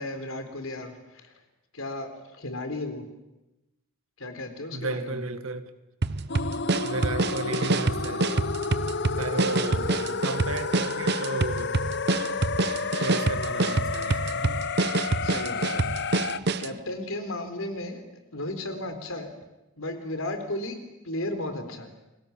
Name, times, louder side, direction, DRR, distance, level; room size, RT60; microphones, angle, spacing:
voice 1, 0.0-1.3 1.7-3.1 4.2-5.2 9.3-10.2 15.2-15.8 16.6-18.0 18.3-19.3 19.8-20.8 21.0-21.9, left 1 dB, 75° left, 3.9 m, -35 dB
voice 2, 4.7-5.6 6.8-8.3 9.2-9.9 10.2-11.7 13.0-14.6 15.3-15.5, right 2 dB, 75° right, 1.9 m, -33 dB
sound 1, 6.0-16.8, right 3 dB, 50° right, 0.8 m, -27 dB
sound 2, 6.3-16.4, left 4 dB, 55° left, 0.9 m, -31 dB
29.5 x 21.5 x 7.3 m
head